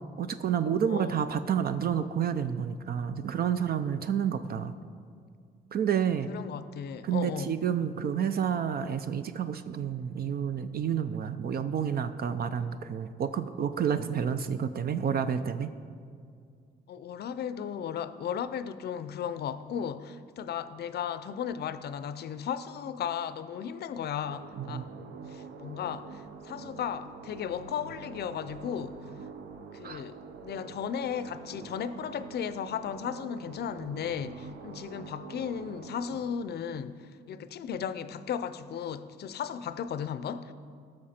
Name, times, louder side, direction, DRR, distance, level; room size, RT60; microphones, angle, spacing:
voice 1, 0.2-4.7 5.7-6.3 7.0-15.7 24.6-24.8 29.8-30.0, right 8 dB, 50° right, 10 dB, 0.5 m, -29 dB
voice 2, 6.3-7.5 16.9-24.9 25.3-29.1 29.7-40.5, left 8 dB, 55° left, 13 dB, 0.5 m, -35 dB
sound 1, 24.3-36.2, right 4 dB, 70° right, 0.9 m, -46 dB
18.5 x 6.2 x 4.3 m, 2.2 s
cardioid pair, 115°, 20 cm